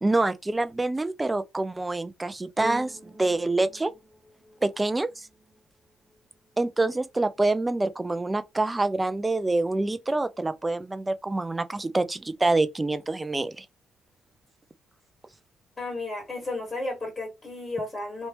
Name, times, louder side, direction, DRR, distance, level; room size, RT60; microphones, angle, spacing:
voice 1, 0.0-3.9 4.6-5.3 6.6-13.7, right 2 dB, 15° right, 0.5 m, -26 dB
sound 1, 2.6-11.1 11.9-12.0, right 1 dB, 40° right, 1.2 m, -46 dB
voice 2, 15.8-18.3, left 2 dB, 30° left, 2.0 m, -33 dB
3.2 x 2.7 x 3.0 m
cardioid pair, 90°, 0 cm